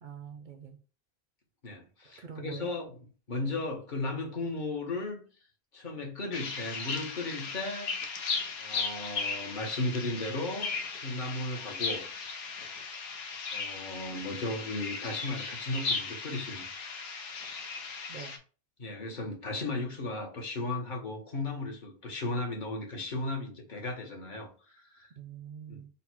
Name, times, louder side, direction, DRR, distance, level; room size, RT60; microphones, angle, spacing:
voice 1, 0.0-0.8 2.2-2.7 18.1-18.4 25.2-25.9, right 7 dB, 60° right, 0.6 m, -44 dB
voice 2, 1.6-5.2 5.7-8.0 8.6-10.7 11.0-12.0 13.5-16.6 18.8-25.1 25.7-25.8, left 2 dB, 50° left, 1.1 m, -35 dB
sound 1, 6.3-18.4, left 4 dB, 75° left, 0.9 m, -36 dB
4.0 x 2.1 x 4.2 m
omnidirectional pair, 1.1 m